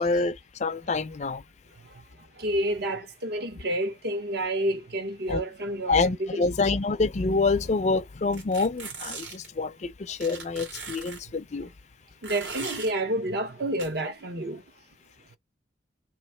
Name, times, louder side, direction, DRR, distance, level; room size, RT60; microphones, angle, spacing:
voice 1, 0.0-1.4 5.3-5.4 5.9-11.7, left 3 dB, 40° left, 0.4 m, -27 dB
voice 2, 2.4-6.4 12.2-14.6, right 1 dB, 60° right, 0.9 m, -29 dB
sound 1, 8.3-9.5 10.2-11.2 12.2-12.9 13.8-13.9, right 4 dB, 75° right, 1.9 m, -38 dB
3.4 x 3.1 x 4.3 m
head